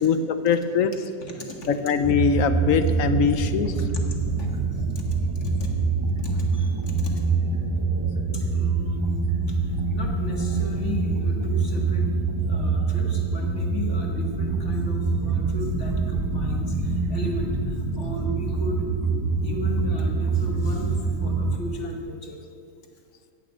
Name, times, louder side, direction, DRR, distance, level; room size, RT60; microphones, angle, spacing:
voice 1, 0.0-0.9 1.7-3.7, left 6 dB, 65° left, 10 dB, 0.8 m, -22 dB
voice 2, 1.2-1.7 3.9-4.0 4.4-5.0 5.4-5.7 6.2-7.3 8.3-9.1 9.5-9.6 9.9-12.1 12.5-18.8 19.4-22.4, left 1 dB, 40° left, 0 dB, 2.0 m, -36 dB
sound 1, 2.0-21.6, right 4 dB, 15° right, 0.8 m, -25 dB
16.0 x 6.0 x 8.4 m, 2.4 s
omnidirectional pair, 1.9 m